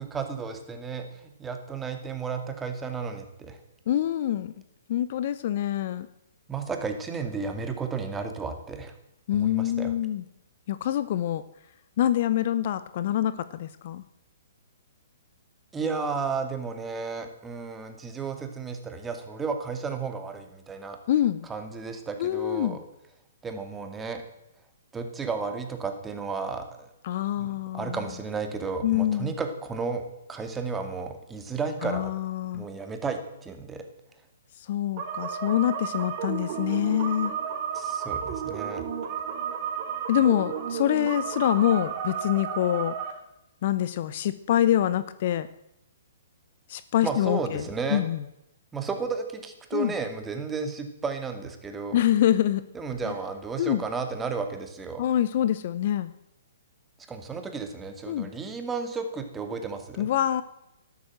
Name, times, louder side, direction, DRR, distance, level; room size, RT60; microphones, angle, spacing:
voice 1, 0.0-3.6 6.5-9.0 9.3-9.9 15.7-21.0 21.5-22.8 23.4-24.2 24.9-26.9 27.4-30.0 30.3-32.1 32.5-33.8 37.7-38.8 47.0-48.0 48.7-52.0 52.7-55.0 57.1-60.1, right 5 dB, 10° right, 6 dB, 2.3 m, -33 dB
voice 2, 3.9-4.5 4.9-6.1 9.3-10.2 10.7-11.4 12.0-14.0 21.1-21.5 22.2-22.8 27.0-28.0 28.8-29.3 31.8-32.7 34.6-37.3 40.1-43.0 43.6-45.5 46.7-48.2 49.7-49.9 51.9-52.6 53.6-53.8 55.0-56.1 58.1-58.3 60.0-60.4, left 11 dB, 50° left, 15 dB, 0.8 m, -25 dB
sound 1, 35.0-43.1, right 8 dB, 40° right, 3.2 m, -32 dB
12.5 x 12.5 x 7.8 m, 0.84 s
figure-of-eight pair, 125°, 0 cm